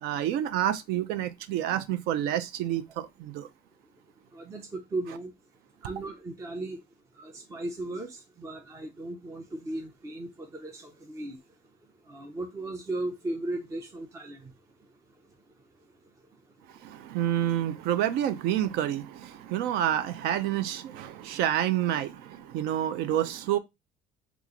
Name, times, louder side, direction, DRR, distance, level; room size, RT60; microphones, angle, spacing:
voice 1, 0.0-3.5 16.8-23.6, right 11 dB, 70° right, 0.5 m, -28 dB
voice 2, 4.3-5.3 5.8-6.8 7.2-11.4 12.1-14.5, right 2 dB, 15° right, 0.5 m, -36 dB
3.0 x 2.4 x 3.7 m
cardioid pair, 140°, 17 cm